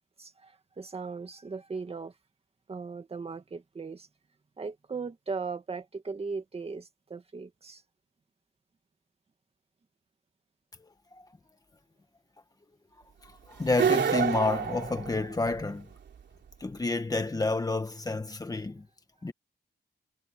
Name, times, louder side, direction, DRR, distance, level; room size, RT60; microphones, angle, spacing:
voice 1, 0.2-2.1 2.7-4.1 4.6-7.8, right 4 dB, 30° right, 2.2 m, -38 dB
voice 2, 10.8-11.2 13.5-15.9 16.6-18.8 19.2-19.3, left 3 dB, 20° left, 1.5 m, -29 dB
sound 1, 13.7-15.7, right 7 dB, 70° right, 3.3 m, -28 dB
wide cardioid pair, 170°, 19 cm